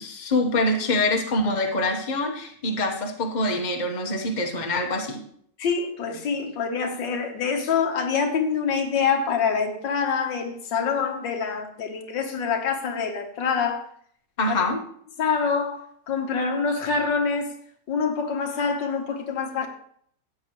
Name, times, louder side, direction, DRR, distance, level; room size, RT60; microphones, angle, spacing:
voice 1, 0.0-5.2 14.4-14.8, left 2 dB, 30° left, 1.2 m, -25 dB
voice 2, 5.6-13.9 14.5-14.6 15.2-17.5 17.9-19.7, left 5 dB, 90° left, 1.9 m, -25 dB
13.5 x 8.4 x 3.1 m
omnidirectional pair, 1.9 m